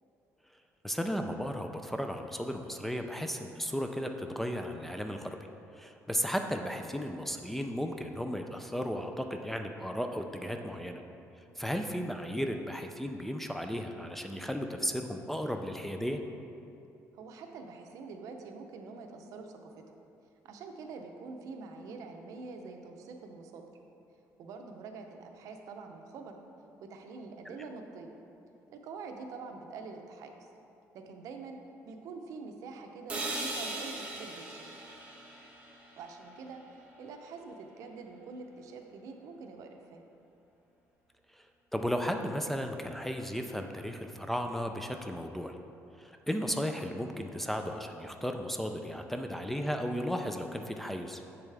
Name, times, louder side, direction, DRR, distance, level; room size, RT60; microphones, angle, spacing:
voice 1, 0.8-5.4 5.7-11.0 11.4-16.2 41.3-41.5 41.7-45.6 46.0-51.2, equal, 5° left, 5 dB, 0.3 m, -35 dB
voice 2, 17.1-19.7 20.4-23.6 24.4-26.4 26.8-28.2 28.7-30.3 30.9-31.6 31.8-34.7 36.0-40.0, right 4 dB, 70° right, 4 dB, 0.7 m, -45 dB
sound 1, 33.1-37.1, right 2 dB, 20° right, 1.2 m, -40 dB
7.4 x 6.9 x 3.4 m, 2.7 s
cardioid pair, 140°, 6 cm